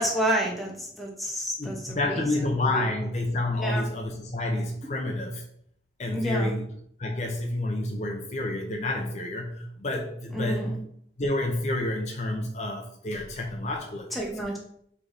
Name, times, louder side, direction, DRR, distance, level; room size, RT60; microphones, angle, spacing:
voice 1, 0.0-2.9 3.6-3.9 4.8-4.9 6.1-6.6 10.3-10.8 14.1-14.6, right 1 dB, ahead, -2 dB, 0.7 m, -30 dB
voice 2, 1.6-5.4 6.0-6.7 7.0-10.7 11.2-14.2, left 2 dB, 35° left, 1 dB, 0.6 m, -29 dB
3.7 x 3.4 x 3.9 m, 0.67 s
head